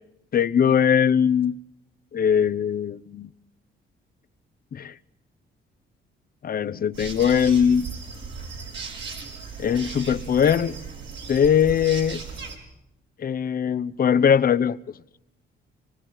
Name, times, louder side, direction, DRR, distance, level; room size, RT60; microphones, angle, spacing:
voice 1, 0.3-1.5 2.1-3.3 4.7-4.9 6.4-7.9 9.6-10.7 11.3-12.2 13.2-14.9, left 8 dB, 45° left, 0.9 m, -21 dB
sound 1, 6.9-12.6, right 5 dB, 65° right, 5.8 m, -37 dB
25.0 x 21.5 x 7.5 m
cardioid pair, 90°, 20 cm